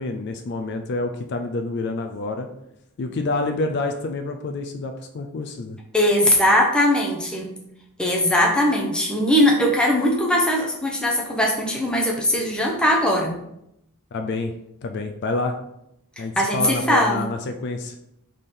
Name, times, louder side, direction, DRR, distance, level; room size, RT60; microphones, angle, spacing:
voice 1, 0.0-2.5 3.0-5.8 14.1-14.5 14.8-15.6 16.2-17.9, left 3 dB, 50° left, 6 dB, 0.4 m, -28 dB
voice 2, 5.9-7.5 8.0-13.4 16.2-17.3, left 1 dB, 5° left, -1 dB, 0.7 m, -20 dB
3.7 x 3.3 x 4.2 m, 0.80 s
head